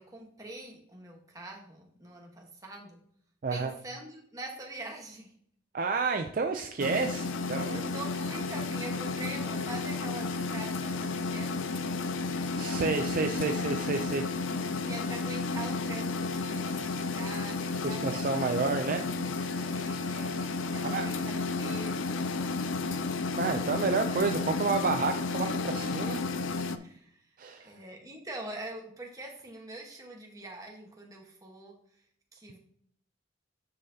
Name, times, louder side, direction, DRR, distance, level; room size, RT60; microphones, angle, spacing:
voice 1, 0.0-3.0 3.5-5.3 7.7-11.9 14.5-18.3 19.6-22.4 26.8-32.0 32.3-32.6, right 2 dB, 20° right, 0 dB, 1.3 m, -44 dB
voice 2, 5.7-7.9 12.6-14.7 17.8-19.6 20.8-21.1 23.4-26.2 27.4-27.7, right 4 dB, 45° right, 5 dB, 0.4 m, -30 dB
sound 1, 6.8-26.8, left 3 dB, 80° left, 0.5 m, -32 dB
9.6 x 5.5 x 2.8 m, 0.64 s
head